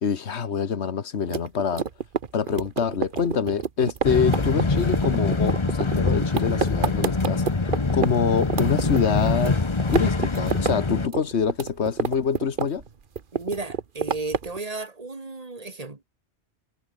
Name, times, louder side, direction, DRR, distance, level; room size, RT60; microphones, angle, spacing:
voice 1, 0.0-1.9 2.3-7.6 7.9-9.6 9.9-12.8, left 6 dB, 70° left, 1.6 m, -25 dB
sound 1, 1.2-8.1 8.4-9.5 9.8-10.7 11.0-12.9 13.2-14.6, right 6 dB, 50° right, 1.2 m, -28 dB
sound 2, 4.0-11.1, left 3 dB, 25° left, 1.2 m, -24 dB
voice 2, 13.3-16.0, right 3 dB, 35° right, 1.9 m, -34 dB
omnidirectional pair, 1.2 m